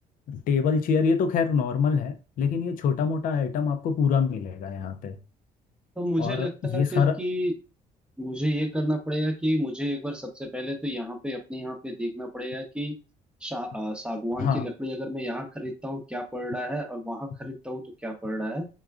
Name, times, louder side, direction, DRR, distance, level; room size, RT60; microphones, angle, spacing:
voice 1, 0.3-5.2 6.2-7.2 14.4-14.6, left 6 dB, 60° left, 0.4 m, -25 dB
voice 2, 6.0-7.5 8.2-13.0 13.4-18.7, equal, 5° right, 0.7 m, -31 dB
3.6 x 2.3 x 2.3 m
supercardioid pair, 80°, 16 cm